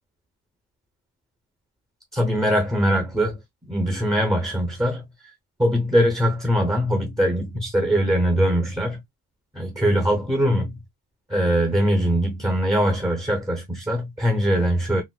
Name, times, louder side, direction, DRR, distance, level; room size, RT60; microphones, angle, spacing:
voice 1, 2.1-3.4 3.6-5.0 5.6-9.0 9.5-10.7 11.3-15.0, equal, 10° right, 0.8 m, -22 dB
4.1 x 2.0 x 2.2 m
cardioid pair, 120°, 41 cm